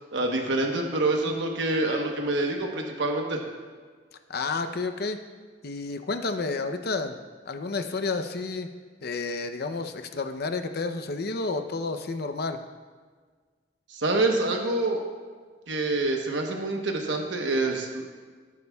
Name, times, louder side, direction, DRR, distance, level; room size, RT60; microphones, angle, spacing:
voice 1, 0.1-3.4 13.9-15.0 15.7-18.0, right 2 dB, 75° right, 2 dB, 1.1 m, -26 dB
voice 2, 4.3-5.2 5.6-7.2 7.5-8.7 9.0-12.6, left 3 dB, 60° left, 8 dB, 0.7 m, -30 dB
17.5 x 9.4 x 2.3 m, 1.5 s
head